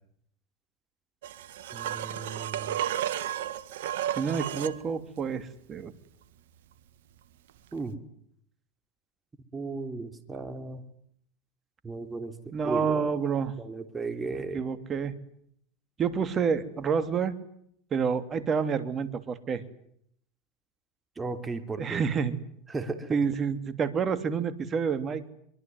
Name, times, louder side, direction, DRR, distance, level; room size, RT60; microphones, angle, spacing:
sound 1, 1.2-4.8 7.7-7.8, right 11 dB, 80° right, 1.7 m, -33 dB
voice 1, 1.7-2.7 7.7-8.0 9.5-10.8 11.8-12.3 12.6-13.1 13.6-14.6 21.2-22.0 22.7-23.2, right 3 dB, 20° right, 8 dB, 3.4 m, -35 dB
voice 2, 4.1-5.9 12.5-13.5 14.4-15.1 16.0-17.4 17.9-19.6 21.8-22.3 23.1-25.3, right 6 dB, 35° right, 11 dB, 3.0 m, -28 dB
24.0 x 23.5 x 9.6 m, 0.70 s
hypercardioid pair, 95°, 0 cm